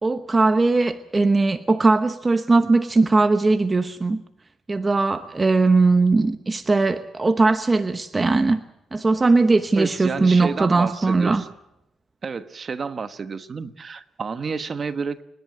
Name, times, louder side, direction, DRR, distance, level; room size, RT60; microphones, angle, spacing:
voice 1, 0.0-4.2 4.7-8.6 8.9-11.4, right 3 dB, 25° right, 9 dB, 1.0 m, -19 dB
voice 2, 9.7-11.5 12.2-15.2, right 5 dB, 40° right, 10 dB, 1.2 m, -30 dB
29.5 x 11.0 x 9.4 m, 0.84 s
cardioid pair, 90°, 0 cm